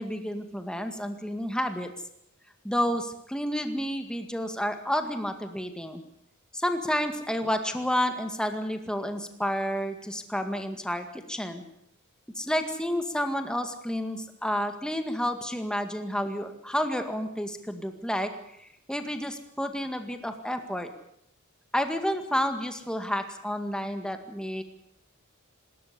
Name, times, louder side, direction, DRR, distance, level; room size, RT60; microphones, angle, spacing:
voice 1, 0.0-1.9 2.6-6.0 6.5-11.6 12.4-18.3 18.6-20.9 21.7-24.6, equal, 5° left, 6 dB, 2.0 m, -30 dB
27.0 x 13.5 x 8.3 m, 0.72 s
head